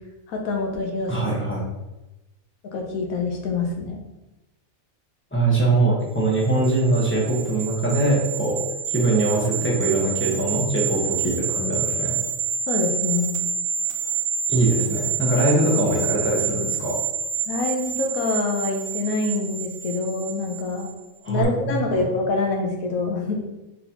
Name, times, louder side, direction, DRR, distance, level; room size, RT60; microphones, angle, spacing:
voice 1, 0.3-1.3 2.7-4.0 12.7-13.4 17.5-20.9 21.3-23.4, left 3 dB, 75° left, 2 dB, 1.2 m, -26 dB
voice 2, 1.1-1.6 5.3-8.6 8.9-12.2 14.5-17.0 21.2-21.7, right 2 dB, 10° left, -4 dB, 0.8 m, -22 dB
sound 1, 6.3-20.9 21.3-21.4, right 6 dB, 55° right, 0.5 m, -28 dB
4.0 x 3.9 x 2.8 m, 1.0 s
omnidirectional pair, 1.5 m